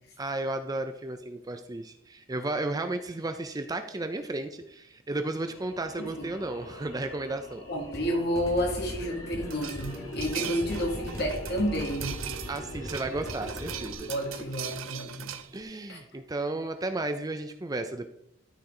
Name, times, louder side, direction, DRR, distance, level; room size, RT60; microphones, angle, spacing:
voice 1, 0.2-7.6 12.5-14.1 15.5-18.1, right 2 dB, 20° right, 7 dB, 0.5 m, -33 dB
sound 1, 5.3-15.6, equal, 80° left, 2.1 m, -45 dB
voice 2, 7.7-12.2 14.1-15.3 15.9-16.0, equal, 55° left, 0 dB, 2.4 m, -30 dB
sound 2, 7.8-13.9, equal, 15° left, 1.2 m, -40 dB
sound 3, 9.5-15.6, right 11 dB, 75° right, 0.6 m, -40 dB
12.5 x 4.5 x 3.8 m, 0.77 s
head